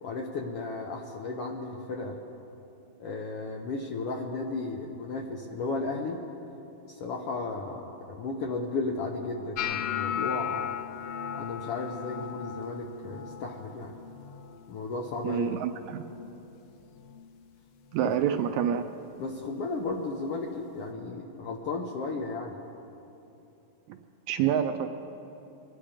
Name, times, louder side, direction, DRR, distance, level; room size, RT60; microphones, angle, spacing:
voice 1, 0.0-2.2 3.0-6.2 6.8-10.7 11.3-14.0 14.7-15.6 18.0-18.1 19.2-22.6, left 3 dB, 70° left, 1 dB, 1.4 m, -34 dB
sound 1, 9.6-15.7 15.9-16.4 16.8-17.3 18.0-18.2 19.9-20.0, left 9 dB, 85° left, 1.3 m, -37 dB
voice 2, 15.2-16.0 17.9-18.8 23.9-24.0 24.3-24.9, right 9 dB, 75° right, 7 dB, 1.8 m, -27 dB
24.5 x 10.5 x 5.0 m, 2.8 s
omnidirectional pair, 3.6 m